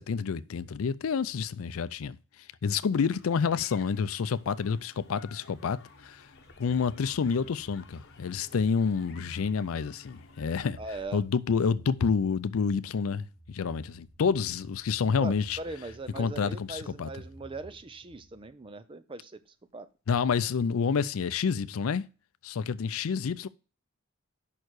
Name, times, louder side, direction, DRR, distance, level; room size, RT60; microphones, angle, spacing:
voice 1, 0.0-2.2 2.6-6.2 6.6-10.8 11.1-15.6 16.2-17.1 20.1-22.0 22.4-23.5, left 6 dB, 85° left, 0.4 m, -28 dB
sound 1, 2.9-10.5, left 4 dB, 55° left, 1.1 m, -54 dB
sound 2, 5.8-18.7, right 1 dB, 70° right, 2.1 m, -56 dB
voice 2, 10.8-11.2 15.2-19.4 19.7-19.9, right 2 dB, 25° right, 0.5 m, -40 dB
5.8 x 4.6 x 6.3 m
head